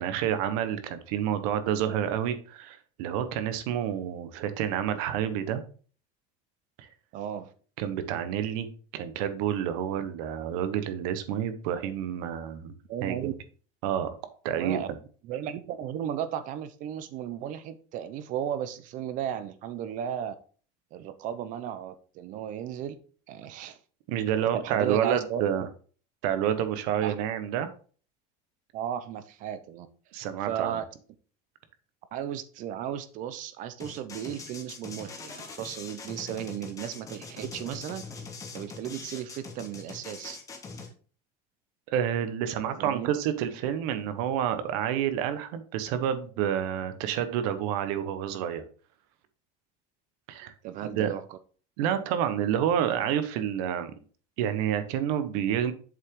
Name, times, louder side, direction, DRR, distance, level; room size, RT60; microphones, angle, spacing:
voice 1, 0.0-5.6 6.8-6.9 7.8-8.7 8.9-12.7 13.0-13.3 13.8-14.1 14.4-14.8 24.1-25.6 26.2-27.7 30.1-30.8 41.9-48.6 50.3-50.5 50.8-51.1 51.8-53.9 54.4-55.7, right 9 dB, 65° right, 10 dB, 1.1 m, -29 dB
voice 2, 7.1-7.5 12.9-13.3 14.6-14.9 15.2-20.4 20.9-23.0 23.3-23.8 24.5-25.4 27.0-27.2 28.7-29.9 30.4-30.9 32.1-38.0 38.5-40.4 42.8-43.1 50.6-51.4, right 10 dB, 40° right, 12 dB, 0.8 m, -35 dB
sound 1, 33.8-40.9, left 4 dB, 15° left, 1.2 m, -42 dB
7.5 x 5.7 x 3.7 m, 0.41 s
cardioid pair, 175°, 20 cm